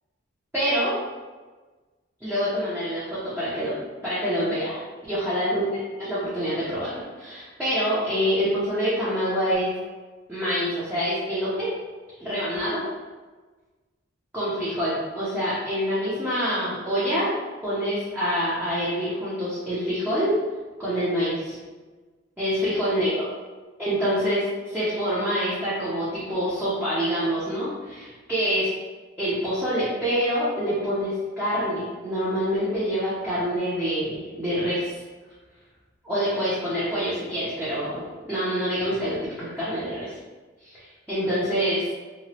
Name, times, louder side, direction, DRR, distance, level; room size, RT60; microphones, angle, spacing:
voice 1, 0.5-1.0 2.2-3.7 4.0-4.8 5.1-5.6 6.0-9.7 10.3-11.7 12.2-12.8 14.3-17.3 17.6-20.3 20.8-21.6 22.4-23.2 23.8-28.7 29.2-34.9 36.0-40.1 40.6-41.8, equal, 10° right, -11 dB, 0.6 m, -26 dB
2.9 x 2.1 x 2.7 m, 1.3 s
head